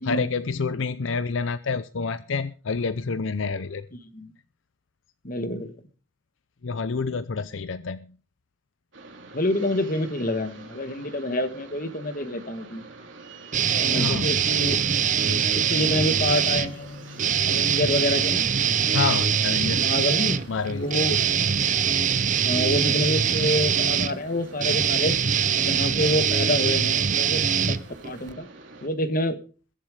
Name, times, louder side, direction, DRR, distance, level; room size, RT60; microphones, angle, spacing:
voice 1, 0.0-3.9 6.6-8.1 13.9-14.3 18.9-20.0 20.5-20.9, left 4 dB, 70° left, 14 dB, 0.6 m, -28 dB
voice 2, 5.2-5.7 9.3-12.8 13.7-14.8 15.3-18.4 19.7-20.4 20.7-21.2 22.4-25.1 25.6-27.8 28.0-28.5 28.8-29.4, left 1 dB, 45° left, 10 dB, 1.4 m, -27 dB
sound 1, 8.9-28.9, right 3 dB, 70° right, 3.3 m, -46 dB
sound 2, 13.5-16.7 17.2-28.3, right 7 dB, 40° right, 0.7 m, -23 dB
22.0 x 7.4 x 4.9 m, 0.38 s
head